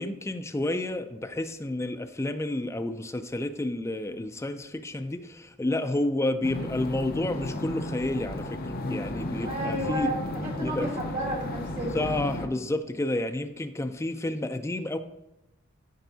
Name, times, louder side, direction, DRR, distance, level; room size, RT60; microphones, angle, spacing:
voice 1, 0.0-8.6 8.9-10.1 10.6-10.9 11.9-15.0, left 1 dB, 15° left, 7 dB, 0.4 m, -30 dB
sound 1, 6.4-12.5, left 1 dB, 45° left, 0.7 m, -34 dB
voice 2, 9.4-12.2, right 1 dB, 40° right, -5 dB, 3.0 m, -32 dB
13.0 x 4.6 x 2.8 m, 0.92 s
head